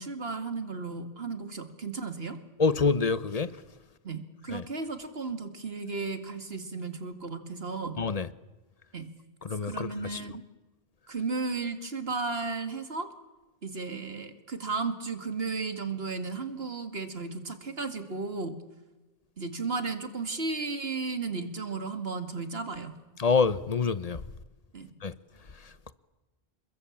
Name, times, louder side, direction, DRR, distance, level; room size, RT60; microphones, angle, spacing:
voice 1, 0.0-2.4 4.0-8.0 8.9-9.1 9.6-10.4 11.1-13.1 13.6-18.5 19.4-22.9 24.7-24.9, right 4 dB, 70° right, 2.6 m, -34 dB
voice 2, 2.6-3.5 4.5-4.7 8.0-8.3 9.4-10.2 23.2-24.2 25.0-25.1, left 4 dB, 40° left, 1.0 m, -26 dB
29.0 x 21.5 x 8.7 m
omnidirectional pair, 1.1 m